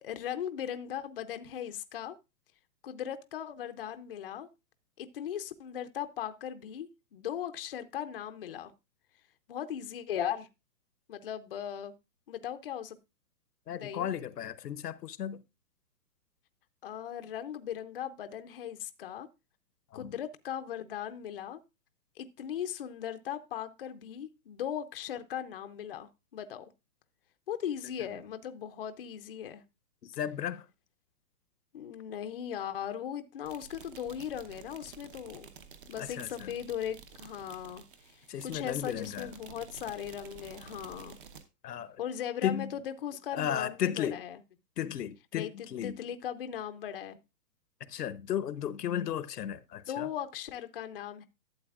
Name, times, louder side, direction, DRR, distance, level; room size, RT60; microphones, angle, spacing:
voice 1, 0.0-2.2 2.8-4.5 5.0-8.7 9.5-10.5 11.1-11.9 12.3-13.0 13.8-14.1 16.8-19.3 19.9-21.6 22.2-26.7 27.5-29.6 31.7-35.5 35.9-41.2 42.0-44.4 45.3-47.2 49.9-51.3, left 9 dB, 40° left, 0.5 m, -38 dB
voice 2, 13.7-15.4 19.9-20.1 30.0-30.7 36.0-36.5 38.3-39.3 41.6-42.0 42.4-42.7 43.3-44.2 44.8-46.0 47.8-50.1, left 10 dB, 85° left, 0.8 m, -34 dB
sound 1, 33.4-41.4, right 6 dB, 35° right, 0.9 m, -51 dB
12.0 x 7.9 x 2.4 m
hypercardioid pair, 160°, 47 cm